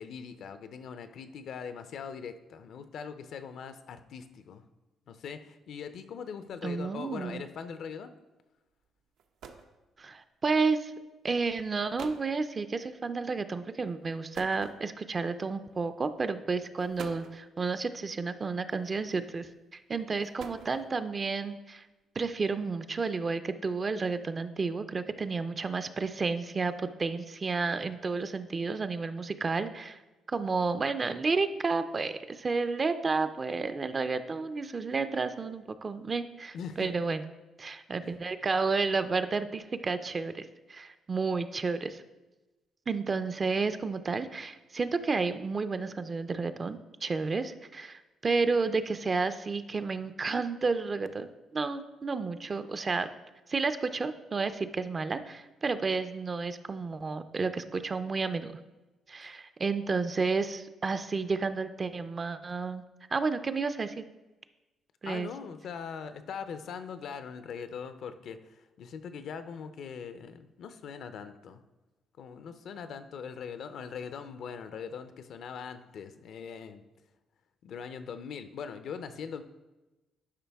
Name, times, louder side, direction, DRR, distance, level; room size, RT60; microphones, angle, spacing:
voice 1, 0.0-4.6 5.1-8.1 36.5-36.9 38.0-38.2 65.0-71.6 72.2-76.8 77.6-79.4, left 6 dB, 60° left, 10 dB, 0.5 m, -41 dB
voice 2, 6.6-7.4 10.0-10.9 11.2-19.5 19.9-21.8 22.2-30.0 30.3-37.2 37.6-42.0 42.9-53.1 53.5-58.5 59.1-62.8 63.1-64.0 65.0-65.3, right 4 dB, 30° right, 10 dB, 0.4 m, -31 dB
sound 1, 8.8-8.9 9.2-9.8 10.8-11.0 11.6-11.7 12.0-12.3 14.3-15.2 16.1-16.3 16.8-17.5 18.7-19.2 20.0-21.1, right 6 dB, 80° right, 0.7 m, -47 dB
11.5 x 5.2 x 3.5 m, 1.1 s
cardioid pair, 135°, 0 cm